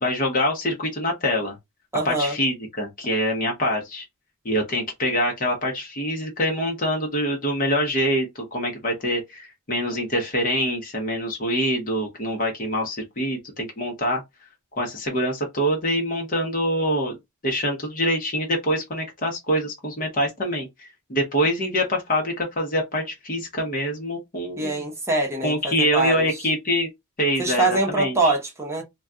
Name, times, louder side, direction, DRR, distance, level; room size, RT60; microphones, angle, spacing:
voice 1, 0.0-1.6 2.0-4.0 4.4-14.2 14.7-17.2 17.4-24.8 25.4-26.9 27.2-28.3, equal, 40° left, 0.8 m, -25 dB
voice 2, 1.9-2.4 24.6-26.3 27.4-28.8, right 2 dB, 10° right, 0.8 m, -24 dB
2.3 x 2.2 x 3.7 m
head